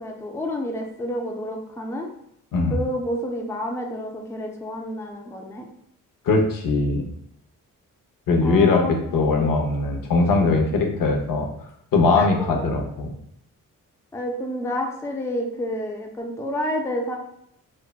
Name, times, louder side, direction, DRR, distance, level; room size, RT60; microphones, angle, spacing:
voice 1, 0.0-2.1 2.7-5.7 8.4-9.0 12.2-12.3 12.6-12.7 14.1-17.2, equal, 10° left, 1 dB, 0.5 m, -29 dB
voice 2, 6.3-7.0 8.3-8.8 9.1-11.5 11.9-13.1, left 3 dB, 75° left, 1 dB, 0.6 m, -20 dB
3.3 x 2.1 x 2.2 m, 0.75 s
cardioid pair, 65°, 33 cm